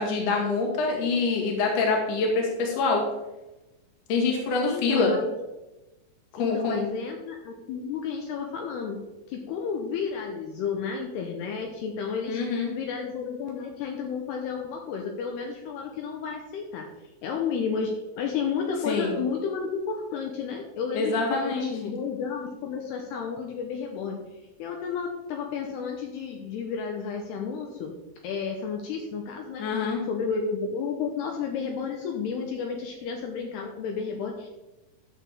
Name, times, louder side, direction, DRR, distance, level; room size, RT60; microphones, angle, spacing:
voice 1, 0.0-3.0 4.1-5.1 6.4-6.9 12.3-12.7 18.9-19.2 20.9-21.9 29.6-30.0, left 4 dB, 50° left, 0 dB, 2.1 m, -25 dB
voice 2, 4.6-5.3 6.4-9.0 9.3-16.9 17.2-17.9 18.2-24.2 24.6-27.9 28.2-34.5, left 6 dB, 75° left, 2 dB, 2.7 m, -32 dB
12.0 x 6.5 x 3.5 m, 1.0 s
omnidirectional pair, 5.2 m